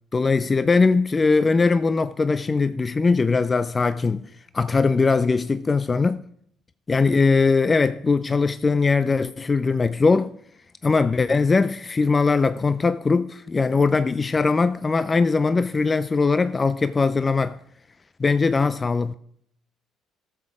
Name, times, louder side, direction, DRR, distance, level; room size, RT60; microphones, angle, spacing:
voice 1, 0.1-6.2 6.9-10.4 10.8-17.6 18.2-19.1, left 4 dB, 30° left, 0.4 m, -21 dB
13.5 x 7.0 x 4.8 m
hypercardioid pair, 60°, 0 cm